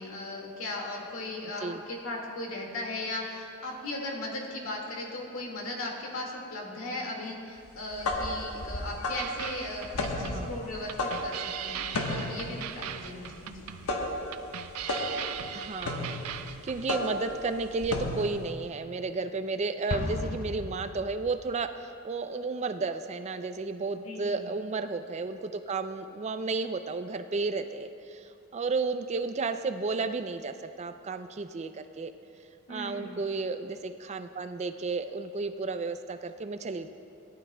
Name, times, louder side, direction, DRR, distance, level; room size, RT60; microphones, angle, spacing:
voice 1, 0.0-13.7 23.9-24.5 32.7-33.2, left 2 dB, 70° left, -1 dB, 2.0 m, -37 dB
sound 1, 7.8-18.5, left 1 dB, 85° left, 1.1 m, -34 dB
sound 2, 9.2-17.0, right 9 dB, 90° right, 0.5 m, -39 dB
voice 2, 10.2-10.5 15.5-32.1 32.7-36.9, right 4 dB, 30° right, 9 dB, 0.4 m, -33 dB
Explosion, 19.9-21.6, left 2 dB, 40° left, 0.4 m, -35 dB
18.5 x 11.5 x 2.2 m, 2.6 s
head